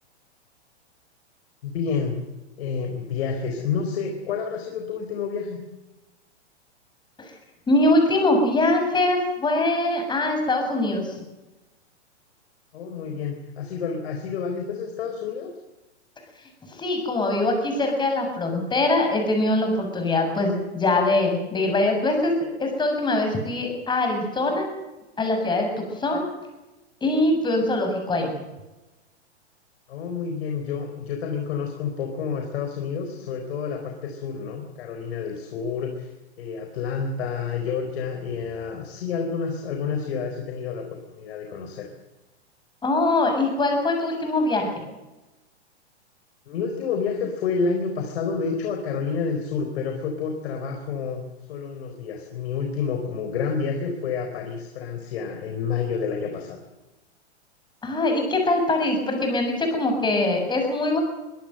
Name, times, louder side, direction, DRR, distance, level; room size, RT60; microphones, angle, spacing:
voice 1, 1.6-2.2 2.6-5.6 12.7-15.5 29.9-36.1 36.4-41.9 46.5-51.2 51.5-56.6, left 5 dB, 60° left, 4 dB, 4.3 m, -29 dB
voice 2, 7.7-11.2 16.8-24.7 25.2-26.3 27.0-28.3 42.8-44.8 57.8-61.0, left 2 dB, 15° left, 4 dB, 7.0 m, -23 dB
23.0 x 18.0 x 7.8 m, 1.1 s
hypercardioid pair, 130°, 34 cm